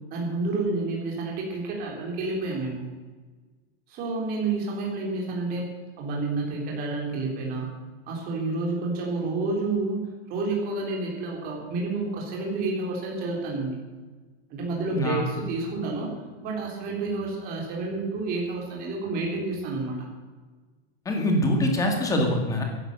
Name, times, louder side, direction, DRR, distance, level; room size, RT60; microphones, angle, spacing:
voice 1, 0.1-2.8 3.9-5.7 6.0-7.7 8.1-10.0 10.3-13.8 14.5-16.1 16.4-20.1, right 3 dB, 30° right, -1 dB, 3.8 m, -29 dB
voice 2, 14.9-15.2 21.1-22.6, left 1 dB, 10° left, 2 dB, 1.9 m, -24 dB
15.0 x 11.0 x 6.7 m, 1.4 s
supercardioid pair, 175°, 31 cm